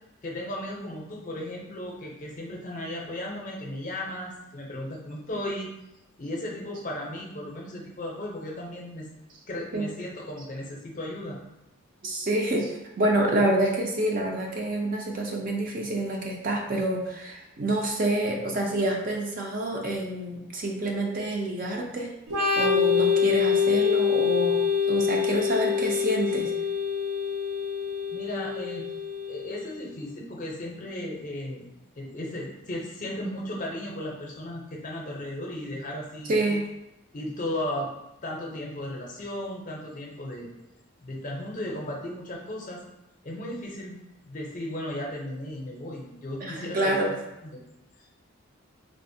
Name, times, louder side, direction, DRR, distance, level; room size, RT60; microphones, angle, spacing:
voice 1, 0.2-5.7 6.2-9.1 9.5-11.4 28.1-28.9 29.3-31.7 32.0-36.6 37.1-37.9 38.2-40.5 41.0-42.8 43.2-47.1 47.5-47.6 48.0-48.1, left 1 dB, 40° left, -2 dB, 0.5 m, -35 dB
voice 2, 12.0-22.1 22.5-24.6 24.8-26.5 36.3-36.6 46.4-47.1, right 1 dB, 40° right, 0 dB, 0.4 m, -27 dB
Organ, 22.3-29.8, left 6 dB, 90° right, 0.6 m, -25 dB
3.4 x 2.0 x 2.6 m, 0.89 s
head